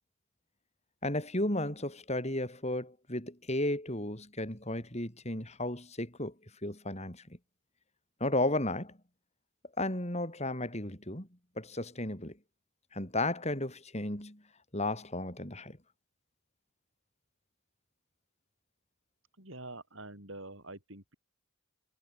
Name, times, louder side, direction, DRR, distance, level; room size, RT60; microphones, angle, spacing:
voice 1, 1.0-6.3 6.6-7.2 8.2-8.9 9.8-11.3 11.6-12.4 12.9-14.4 14.7-15.8, left 1 dB, 30° left, 5.5 m, -34 dB
voice 2, 19.4-21.2, right 2 dB, 60° right, 6.4 m, -46 dB
head